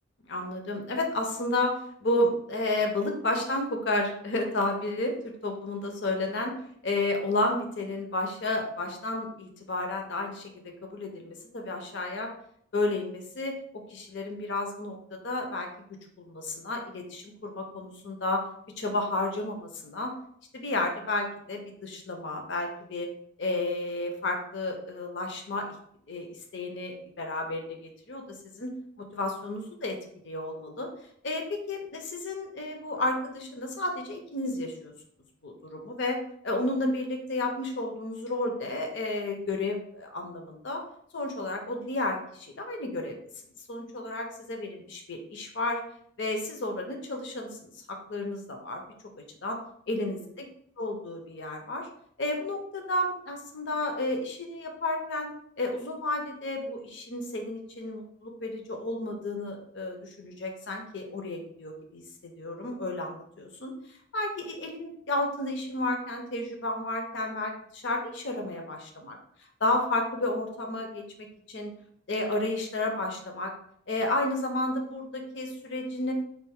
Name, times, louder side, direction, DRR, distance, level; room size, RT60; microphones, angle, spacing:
voice 1, 0.3-6.5 6.8-10.5 10.8-12.3 12.7-15.7 16.2-18.4 18.8-20.1 20.5-23.1 23.4-25.7 26.1-28.2 28.5-28.7 29.0-30.0 30.2-30.9 31.2-34.9 35.4-36.2 36.4-40.8 41.1-43.2 43.7-45.8 46.2-48.8 49.2-49.6 49.9-50.5 50.8-51.9 52.2-55.3 55.6-63.7 64.1-69.2 69.6-71.0 71.5-71.7 72.1-73.5 73.9-76.1, left 2 dB, 60° left, 3 dB, 0.7 m, -32 dB
4.4 x 2.5 x 3.5 m, 0.67 s
head